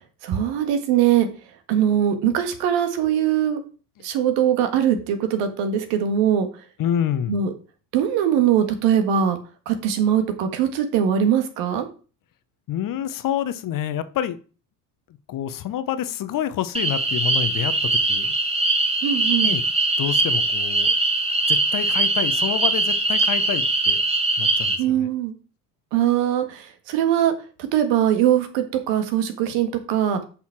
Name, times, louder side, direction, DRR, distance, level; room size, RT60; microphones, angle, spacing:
voice 1, 0.2-1.3 1.7-3.6 4.0-6.5 7.3-7.5 7.9-9.4 9.7-11.9 19.0-19.6 24.8-25.3 25.9-27.3 27.7-30.2, right 9 dB, 65° right, 8 dB, 1.8 m, -21 dB
voice 2, 6.8-7.4 12.7-14.4 15.3-17.7 18.1-18.3 19.4-19.6 20.0-20.9 21.5-24.0 24.4-25.1, left 10 dB, 45° left, 13 dB, 1.0 m, -27 dB
sound 1, 16.7-24.8, right 2 dB, 15° right, 2.0 m, -21 dB
6.7 x 5.6 x 6.0 m, 0.37 s
hypercardioid pair, 70°, 47 cm